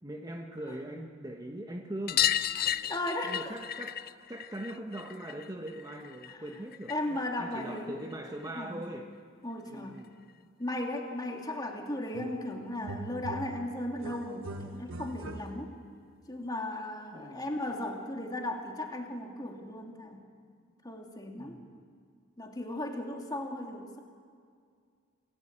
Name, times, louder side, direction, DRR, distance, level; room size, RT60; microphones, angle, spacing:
voice 1, 0.0-2.3 3.2-4.0 4.3-9.1 9.7-10.1 17.1-17.5 21.4-21.8, right 1 dB, 20° right, 2 dB, 1.2 m, -41 dB
sound 1, 2.1-7.2 7.5-8.6 10.0-10.1 10.3-10.4 10.7-10.8 12.1-12.2 12.5-12.6 12.9-13.0 14.2-14.3 15.1-15.2, left 11 dB, 50° left, 0.5 m, -34 dB
voice 2, 2.6-3.5 6.3-6.4 6.9-8.0 8.5-8.8 9.4-10.0 10.6-15.7 16.3-20.2 20.8-21.6 22.4-24.0, left 1 dB, 20° left, 1 dB, 2.7 m, -36 dB
sound 2, 12.1-12.5 12.8-15.9, right 1 dB, 90° right, 1.2 m, -42 dB
27.5 x 16.5 x 8.8 m, 2.1 s
head